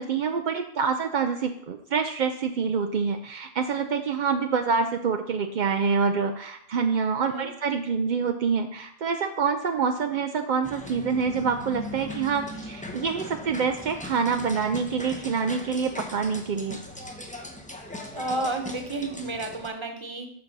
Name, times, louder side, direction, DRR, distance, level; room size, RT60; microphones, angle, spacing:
voice 1, 0.0-16.8, right 5 dB, 60° right, 6 dB, 0.5 m, -26 dB
sound 1, 10.6-19.7, left 1 dB, 10° left, 0.7 m, -39 dB
voice 2, 18.1-20.3, right 2 dB, 25° right, 4 dB, 1.1 m, -31 dB
6.8 x 6.5 x 6.0 m, 0.70 s
omnidirectional pair, 1.3 m